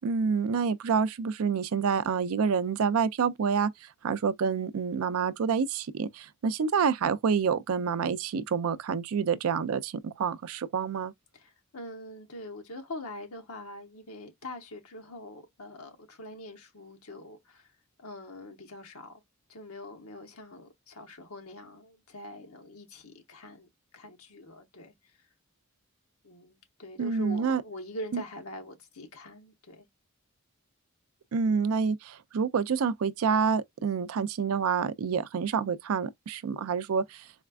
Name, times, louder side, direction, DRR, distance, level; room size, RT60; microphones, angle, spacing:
voice 1, 0.0-3.7 4.0-11.1 27.0-27.6 28.1-28.2 31.3-37.2, right 6 dB, 80° right, 0.4 m, -28 dB
voice 2, 11.3-17.7 18.0-19.2 19.5-24.9 26.2-29.9, left 1 dB, 85° left, 1.0 m, -44 dB
4.2 x 2.3 x 2.4 m
head